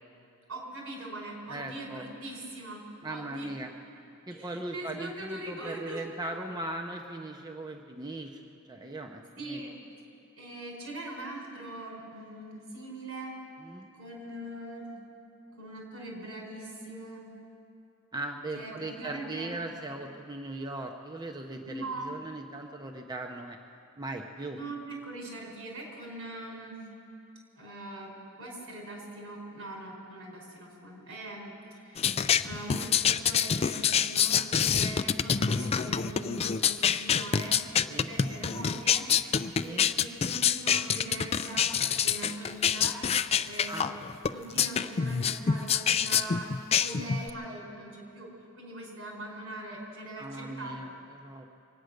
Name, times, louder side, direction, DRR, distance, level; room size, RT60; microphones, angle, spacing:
voice 1, 0.5-3.5 4.3-6.0 9.4-9.7 10.4-13.3 13.9-14.9 15.5-17.2 18.5-19.6 21.6-22.1 24.5-26.8 27.6-28.1 28.4-32.1 32.4-34.4 34.7-37.5 37.9-39.0 39.6-41.7 42.0-43.0 43.4-43.8 44.3-46.5 46.8-48.3 48.5-50.9, right 1 dB, 80° right, -1 dB, 4.9 m, -41 dB
voice 2, 1.5-2.1 3.0-3.7 4.3-9.6 13.6-13.9 18.1-23.6 24.0-24.6 32.4-32.5 37.9-38.1 39.6-39.9 43.7-43.9 50.2-51.5, right 2 dB, 20° right, 3 dB, 0.7 m, -39 dB
sound 1, 32.0-47.3, left 7 dB, 30° left, 0.3 m, -26 dB
24.0 x 9.2 x 6.5 m, 2.6 s
head